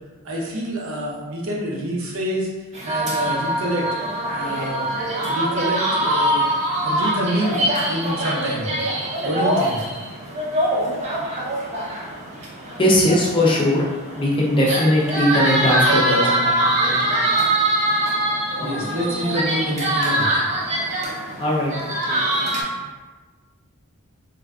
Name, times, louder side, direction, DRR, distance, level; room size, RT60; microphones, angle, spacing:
voice 1, 0.2-2.5 2.8-3.9 4.3-4.9 5.2-6.5 6.8-8.7 9.2-9.8 18.6-20.4, equal, 85° right, -3 dB, 0.8 m, -27 dB
sound 1, 2.7-22.6, right 1 dB, 30° right, 0.5 m, -23 dB
voice 2, 12.8-13.8 14.1-17.3 18.6-18.9 21.4-22.7, left 1 dB, 25° left, -4 dB, 0.6 m, -21 dB
3.7 x 2.5 x 2.3 m, 1.3 s
head